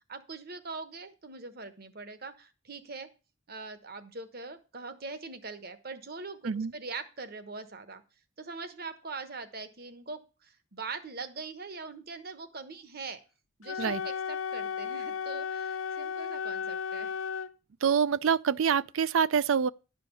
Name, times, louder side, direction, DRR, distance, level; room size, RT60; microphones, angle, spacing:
voice 1, 0.1-3.1 3.5-8.0 8.4-13.2 13.6-17.1, right 3 dB, 50° right, 1.1 m, -42 dB
Wind instrument woodwind instrument, 13.6-17.5, left 6 dB, 75° left, 0.6 m, -34 dB
voice 2, 17.8-19.7, right 7 dB, 75° right, 0.4 m, -26 dB
11.5 x 5.2 x 6.8 m
head